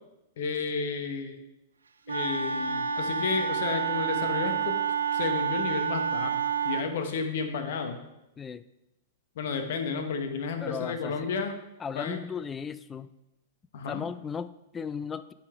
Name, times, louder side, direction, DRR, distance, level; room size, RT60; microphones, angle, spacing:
voice 1, 0.4-1.4 2.1-4.8 5.1-8.0 9.4-11.5 11.9-12.2 13.7-14.0, left 5 dB, 60° left, 6 dB, 1.1 m, -32 dB
Wind instrument woodwind instrument, 2.1-6.9, right 7 dB, 85° right, 0.5 m, -29 dB
voice 2, 10.6-11.3 11.8-13.1 13.9-15.3, left 6 dB, 20° left, 15 dB, 0.4 m, -36 dB
9.8 x 4.2 x 4.8 m, 0.91 s
hypercardioid pair, 105°, 0 cm